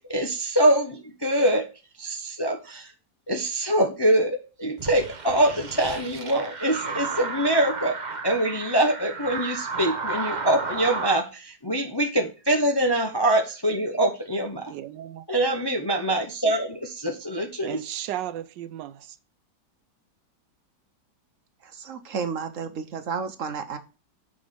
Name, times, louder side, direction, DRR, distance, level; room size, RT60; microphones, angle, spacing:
voice 1, 0.1-1.7 2.0-2.9 3.3-8.0 8.2-14.7 15.3-17.8, right 1 dB, 20° left, 0.6 m, -24 dB
sound 1, 4.8-11.2, right 4 dB, 35° right, 0.8 m, -33 dB
voice 2, 14.5-15.3 17.6-19.2, right 12 dB, 80° right, 1.3 m, -35 dB
voice 3, 21.6-23.8, right 5 dB, 50° right, 1.1 m, -32 dB
6.9 x 5.1 x 5.2 m
omnidirectional pair, 2.0 m